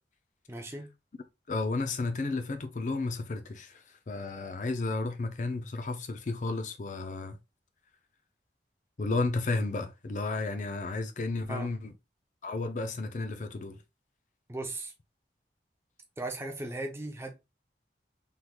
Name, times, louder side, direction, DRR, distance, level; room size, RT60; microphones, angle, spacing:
voice 1, 0.5-0.9 11.5-11.7 14.5-14.9 16.2-17.3, right 2 dB, 15° right, 0.5 m, -37 dB
voice 2, 1.5-7.4 9.0-11.9 12.4-13.8, left 3 dB, 45° left, 0.4 m, -33 dB
3.6 x 3.0 x 2.3 m
head